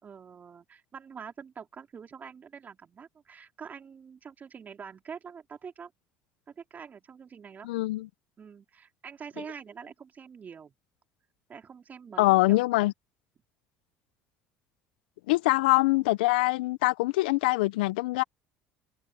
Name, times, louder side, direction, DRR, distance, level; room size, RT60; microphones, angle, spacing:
voice 1, 0.0-5.9 6.5-7.7 8.4-10.7 11.5-12.9, right 6 dB, 35° right, 3.9 m, -45 dB
voice 2, 7.6-8.1 12.2-12.9 15.3-18.2, left 20 dB, 85° left, 0.7 m, -24 dB
hypercardioid pair, 80°, 5 cm